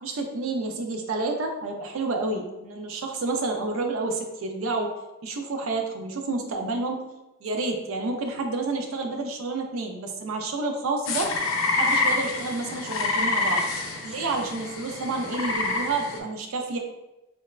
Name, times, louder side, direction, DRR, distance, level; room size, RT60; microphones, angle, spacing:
voice 1, 0.0-4.9 5.2-7.0 7.4-11.3 11.7-13.6 14.0-16.8, right 3 dB, 75° right, 3 dB, 0.4 m, -29 dB
sound 1, 11.1-16.2, left 3 dB, 75° left, 0.4 m, -27 dB
3.2 x 2.1 x 2.3 m, 1.0 s
head